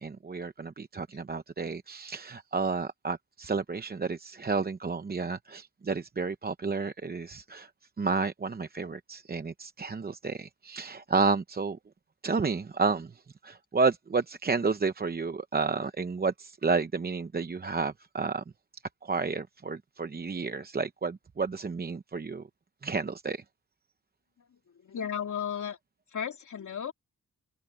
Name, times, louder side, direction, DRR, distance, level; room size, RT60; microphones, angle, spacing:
voice 1, 0.0-7.7 8.0-11.8 12.2-18.4 19.0-22.4 22.8-23.4, right 4 dB, 30° right, 0.8 m, -31 dB
voice 2, 24.8-25.8 26.1-26.9, left 8 dB, 65° left, 3.2 m, -34 dB
open air
wide cardioid pair, 140°, 32 cm